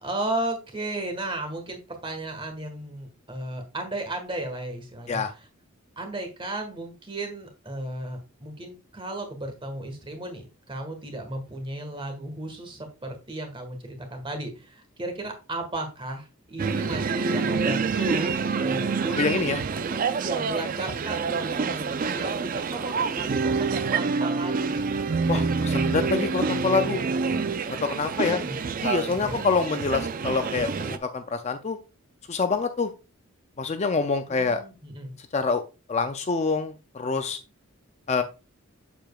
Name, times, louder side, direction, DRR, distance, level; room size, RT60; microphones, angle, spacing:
voice 1, 0.0-5.2 6.0-18.3 18.6-19.3 20.1-25.0 28.0-28.6 29.2-29.4 34.3-35.1, right 2 dB, 20° right, 4 dB, 1.5 m, -34 dB
sound 1, 16.6-31.0, right 4 dB, 40° right, 0.4 m, -27 dB
voice 2, 19.2-19.6 25.3-27.0 27.7-28.4 28.8-31.8 32.3-32.9 33.6-34.6 35.3-35.6 35.9-37.4 38.1-38.2, left 4 dB, 30° left, 8 dB, 0.4 m, -26 dB
7.5 x 6.9 x 2.3 m, 0.30 s
head